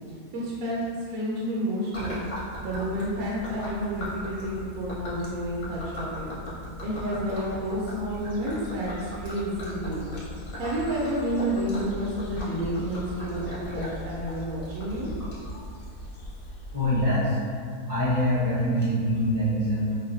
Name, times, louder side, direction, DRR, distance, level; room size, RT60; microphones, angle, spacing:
voice 1, 0.3-2.2 2.6-6.3 6.8-10.1 10.6-15.1, equal, 65° right, -6 dB, 1.0 m, -30 dB
Gurgling / Liquid, 1.9-16.5, left 1 dB, 60° left, 1.4 m, -38 dB
sound 1, 8.2-17.1, equal, 80° left, 1.1 m, -43 dB
voice 2, 16.7-17.4 17.9-20.0, equal, 15° left, -10 dB, 0.6 m, -24 dB
5.4 x 2.2 x 2.6 m, 2.1 s
omnidirectional pair, 1.7 m